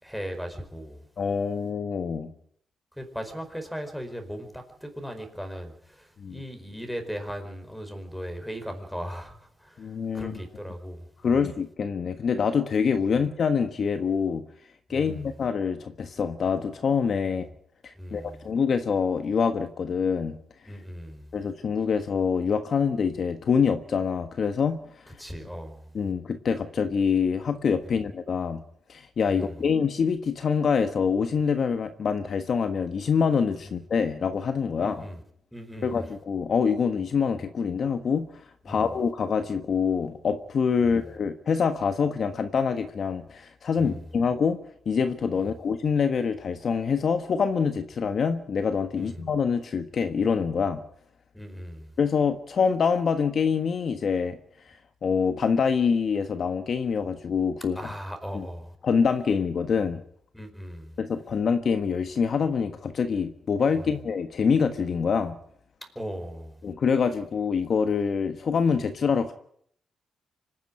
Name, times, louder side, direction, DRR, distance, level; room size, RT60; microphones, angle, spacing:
voice 1, 0.0-1.0 3.0-11.4 13.1-13.2 14.9-15.3 17.3-17.5 18.0-18.5 20.7-21.3 25.2-25.9 29.3-29.7 33.6-33.7 34.8-35.2 35.5-36.0 38.6-38.9 40.8-41.0 43.8-44.0 45.3-45.5 48.9-49.3 51.3-51.9 57.7-58.7 60.3-61.0 63.7-63.9 65.9-66.6, equal, ahead, 6 dB, 4.7 m, -38 dB
voice 2, 1.2-2.3 6.2-6.4 9.8-10.3 11.2-14.4 14.9-17.5 17.8-20.3 21.3-24.8 25.9-28.6 28.9-35.0 35.8-38.3 38.6-44.6 44.8-50.8 52.0-54.4 55.0-57.8 58.3-58.5 58.8-60.0 61.0-65.4 66.6-69.3, left 6 dB, 55° left, 8 dB, 1.4 m, -25 dB
25.5 x 10.5 x 10.0 m, 0.66 s
cardioid pair, 110°, 0 cm